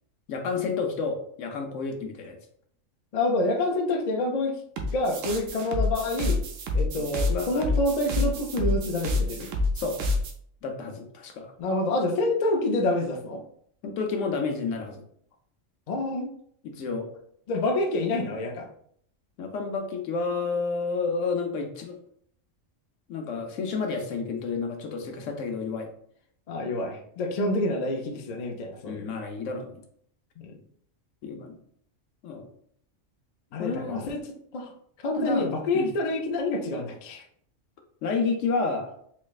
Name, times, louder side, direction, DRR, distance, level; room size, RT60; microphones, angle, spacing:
voice 1, 0.3-2.4 7.0-7.7 8.2-8.3 9.7-10.0 10.6-11.5 13.8-15.0 16.6-17.1 19.4-22.0 23.1-25.9 28.8-29.8 31.2-31.6 32.2-32.5 33.5-34.2 35.1-35.5 35.7-35.9 38.0-38.9, left 4 dB, 75° left, 4 dB, 1.0 m, -30 dB
voice 2, 3.1-4.6 4.9-6.4 6.7-9.5 11.6-13.4 15.9-16.3 17.5-18.7 26.5-29.1 30.4-30.6 33.5-34.2 34.5-34.7 35.0-37.2, left 2 dB, 60° left, 3 dB, 0.4 m, -27 dB
sound 1, 4.8-10.3, left 2 dB, 80° right, 1.0 m, -28 dB
4.2 x 3.0 x 2.4 m, 0.65 s
omnidirectional pair, 1.3 m